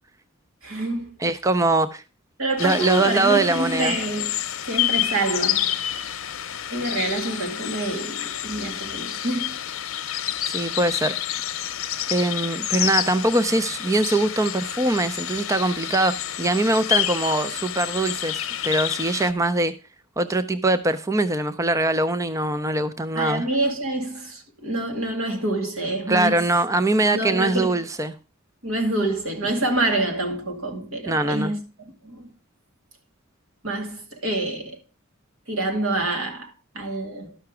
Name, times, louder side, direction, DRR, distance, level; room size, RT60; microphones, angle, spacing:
voice 1, 0.6-1.2 2.4-4.3 4.7-5.8 6.7-9.6 23.1-26.5 27.1-27.8 28.6-32.3 33.6-34.8 35.5-37.4, right 2 dB, 85° right, 2.3 m, -27 dB
voice 2, 1.2-2.0 2.6-3.9 10.5-11.2 12.1-19.7 20.2-23.5 26.1-28.1 31.1-31.5, right 2 dB, 15° right, 0.4 m, -22 dB
sound 1, 2.6-19.3, left 12 dB, 75° left, 0.8 m, -29 dB
12.5 x 5.8 x 4.8 m
head